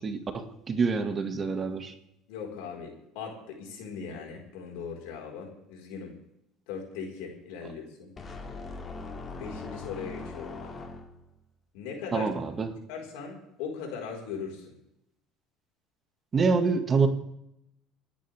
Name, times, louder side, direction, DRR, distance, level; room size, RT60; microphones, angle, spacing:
voice 1, 0.0-1.9 12.1-12.7 16.3-17.1, right 4 dB, 35° right, 7 dB, 2.0 m, -26 dB
voice 2, 2.3-6.1 6.7-8.1 9.4-10.8 11.7-12.3 12.9-14.6, left 6 dB, 80° left, 0 dB, 4.8 m, -39 dB
sound 1, 8.2-11.4, left 3 dB, 30° left, 2.3 m, -40 dB
29.0 x 10.5 x 3.6 m, 0.80 s
supercardioid pair, 95°, 0 cm